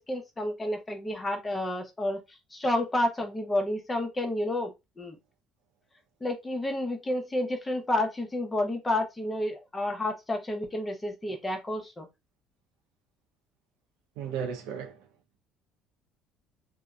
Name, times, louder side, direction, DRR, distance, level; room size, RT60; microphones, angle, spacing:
voice 1, 0.0-2.2 2.5-4.7 5.0-5.2 6.2-12.1, left 1 dB, 20° left, 0.7 m, -30 dB
voice 2, 14.2-15.1, right 7 dB, 90° right, 0.6 m, -35 dB
2.7 x 2.1 x 2.3 m
cardioid pair, 100°, 0 cm